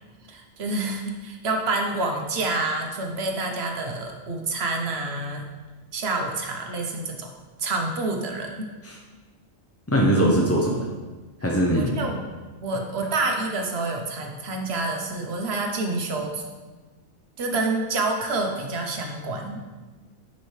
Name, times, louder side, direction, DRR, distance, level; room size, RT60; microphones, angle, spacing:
voice 1, 0.3-5.4 5.9-7.3 7.6-8.7 11.8-12.2 12.6-16.5 17.4-19.6, right 3 dB, 55° right, 2 dB, 1.1 m, -28 dB
voice 2, 9.9-10.9 11.4-12.0, right 1 dB, 20° left, -2 dB, 0.4 m, -21 dB
9.3 x 5.4 x 3.2 m, 1.3 s
omnidirectional pair, 1.4 m